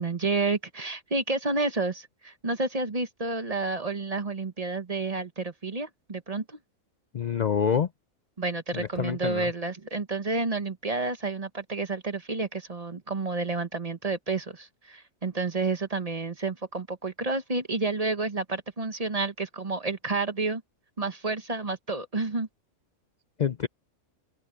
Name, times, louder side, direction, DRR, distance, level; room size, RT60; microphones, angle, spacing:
voice 1, 0.0-6.6 8.4-20.6 21.0-22.5, right 3 dB, 30° right, 1.0 m, -30 dB
voice 2, 7.1-7.9 8.7-9.5 23.4-23.7, left 7 dB, 50° left, 0.5 m, -26 dB
open air
omnidirectional pair, 1.4 m